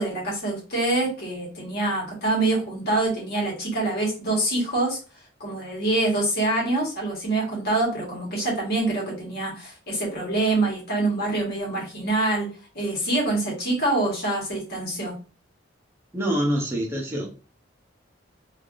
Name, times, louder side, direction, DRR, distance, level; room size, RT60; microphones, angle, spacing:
voice 1, 0.0-5.0 5.4-12.5 12.7-15.2, right 2 dB, 55° left, 1.4 m, -25 dB
voice 2, 16.1-17.3, equal, 15° right, 0.6 m, -25 dB
3.2 x 2.4 x 2.5 m
head